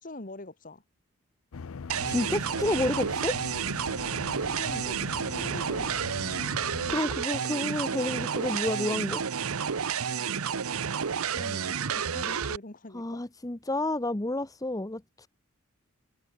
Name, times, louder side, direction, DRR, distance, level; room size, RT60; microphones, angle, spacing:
voice 1, 0.0-0.8 4.6-5.0 5.3-6.3 11.3-13.2, left 2 dB, 40° left, 1.7 m, -44 dB
sound 1, 1.5-7.0, left 5 dB, 75° left, 0.5 m, -41 dB
sound 2, 1.9-12.6, right 7 dB, 85° right, 0.8 m, -30 dB
voice 2, 2.0-3.4 6.9-9.2 12.9-15.3, left 1 dB, 15° left, 0.8 m, -30 dB
head